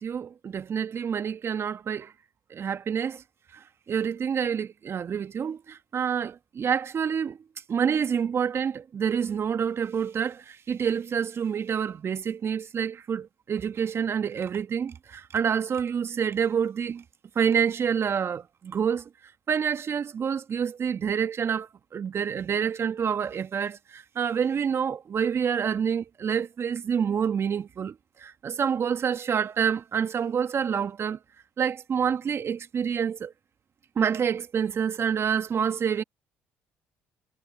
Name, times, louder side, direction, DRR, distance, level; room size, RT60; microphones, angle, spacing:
voice 1, 0.0-2.1 2.5-3.2 3.5-7.4 7.7-17.0 17.3-19.1 19.5-31.2 31.6-33.3 33.9-36.0, right 7 dB, 45° right, 1.6 m, -27 dB
hypercardioid pair, 55°, 6 cm